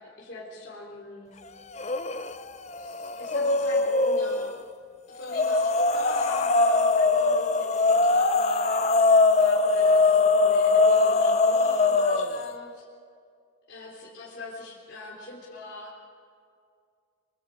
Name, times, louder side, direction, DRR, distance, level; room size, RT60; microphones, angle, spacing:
voice 1, 0.2-1.4 2.8-4.5 5.1-8.6 9.3-12.8 13.7-15.9, left 2 dB, 55° left, -5 dB, 3.9 m, -41 dB
sound 1, 1.7-2.4 2.7-4.5 5.3-12.5, left 3 dB, 30° left, 0.7 m, -22 dB
25.5 x 24.5 x 5.0 m, 2.2 s
head